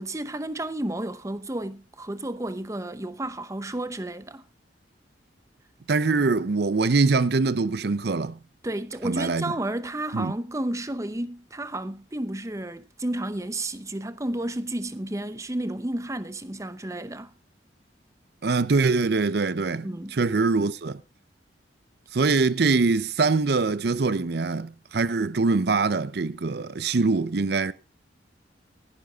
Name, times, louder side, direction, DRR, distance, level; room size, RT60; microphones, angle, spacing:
voice 1, 0.0-4.4 8.6-17.3 19.8-20.2, right 1 dB, 15° right, 0.7 m, -32 dB
voice 2, 5.9-8.4 9.0-9.4 10.1-10.3 18.4-19.9 20.1-21.0 22.1-27.7, right 4 dB, 60° right, 0.6 m, -23 dB
20.0 x 11.5 x 2.4 m
head